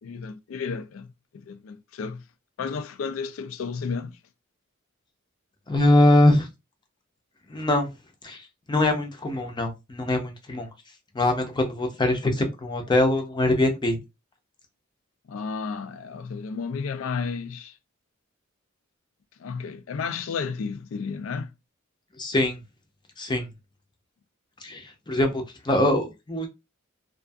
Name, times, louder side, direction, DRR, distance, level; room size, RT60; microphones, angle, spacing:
voice 1, 0.0-2.2 2.6-4.2 15.3-17.7 19.4-21.5, left 5 dB, 75° left, 0.4 m, -32 dB
voice 2, 5.7-6.5 7.5-7.9 8.2-10.7 11.1-14.0 22.2-22.6 23.2-23.5 24.6-26.5, left 1 dB, 20° left, 0.6 m, -23 dB
2.6 x 2.4 x 2.3 m
head